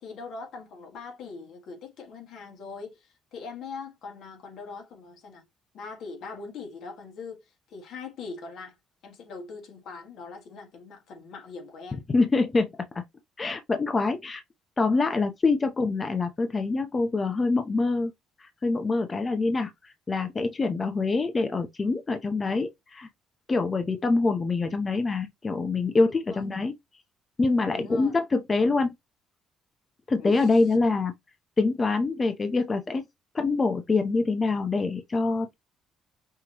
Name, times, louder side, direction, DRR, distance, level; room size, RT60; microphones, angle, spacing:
voice 1, 0.0-3.0 3.3-5.4 5.7-7.4 7.7-8.7 9.0-12.0 26.3-26.4 27.7-28.1 30.2-30.6, left 4 dB, 70° left, 1.8 m, -41 dB
voice 2, 12.1-12.7 12.9-13.0 13.4-14.4 14.8-18.1 18.4-23.1 23.5-26.8 27.4-28.9 30.1-31.1 31.6-33.1 33.3-35.5, left 3 dB, 30° left, 0.7 m, -25 dB
5.7 x 3.0 x 3.0 m
cardioid pair, 95°, 0 cm